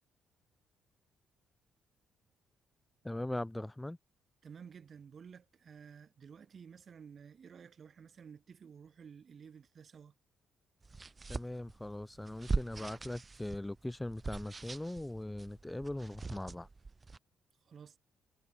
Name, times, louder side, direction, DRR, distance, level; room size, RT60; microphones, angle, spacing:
voice 1, 3.0-4.0 11.3-16.7, left 1 dB, 10° left, 0.5 m, -40 dB
voice 2, 4.4-10.1 17.6-18.0, right 6 dB, 50° right, 2.2 m, -53 dB
sound 1, 10.8-17.2, right 3 dB, 25° right, 0.8 m, -41 dB
cardioid pair, 90°, 0 cm